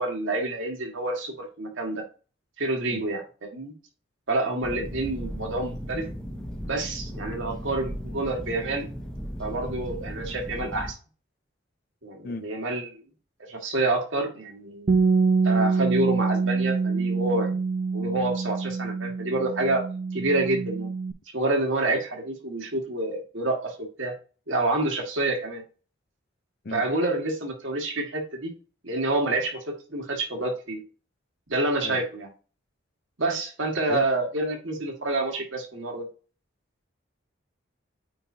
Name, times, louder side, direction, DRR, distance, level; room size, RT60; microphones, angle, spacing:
voice 1, 0.0-2.0 2.6-3.7 4.3-6.1 6.7-8.9 9.4-11.0 12.0-13.0 13.4-14.9 15.4-17.6 17.9-19.8 20.1-20.9 21.3-24.1 24.5-25.6 26.7-28.5 28.8-30.8 31.5-32.3 33.2-36.1, right 2 dB, 80° right, 1.8 m, -28 dB
voice 2, 2.9-3.0 4.7-4.9 12.2-12.4 26.6-26.8 31.8-32.0 33.9-34.0, left 2 dB, 50° left, 0.5 m, -35 dB
sound 1, 4.6-10.9, equal, 5° left, 0.9 m, -36 dB
Bass guitar, 14.9-21.1, right 4 dB, 45° right, 0.4 m, -25 dB
8.9 x 3.9 x 2.8 m
head